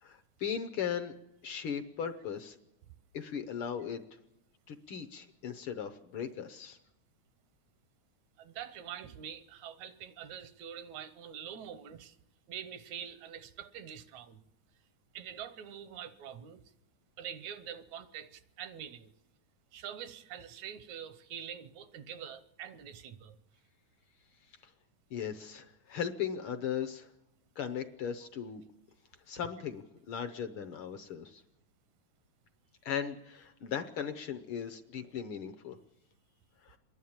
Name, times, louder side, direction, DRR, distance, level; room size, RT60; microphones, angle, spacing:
voice 1, 0.0-1.1 1.4-2.6 3.1-4.0 4.7-6.8 25.1-27.1 27.6-28.6 29.3-31.4 32.8-35.8 36.6-36.8, left 8 dB, 75° left, 1.2 m, -37 dB
voice 2, 8.4-12.2 12.5-14.4 15.1-16.6 17.2-19.1 19.7-23.4, right 9 dB, 80° right, 2.2 m, -45 dB
27.5 x 11.0 x 8.7 m
omnidirectional pair, 3.4 m